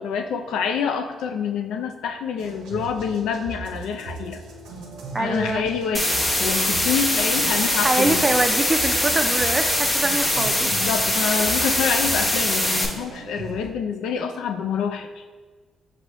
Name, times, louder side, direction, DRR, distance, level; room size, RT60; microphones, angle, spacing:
voice 1, 0.0-4.4 5.2-8.3 10.7-15.2, left 6 dB, 75° left, 7 dB, 0.3 m, -27 dB
sound 1, 2.4-13.7, right 3 dB, 80° right, 0.6 m, -38 dB
voice 2, 5.1-5.7 7.8-10.7, right 2 dB, 25° right, 7 dB, 0.4 m, -24 dB
sound 2, 5.9-12.9, left 1 dB, 25° left, 0.8 m, -22 dB
6.0 x 2.7 x 3.0 m, 1.4 s
hypercardioid pair, 50°, 0 cm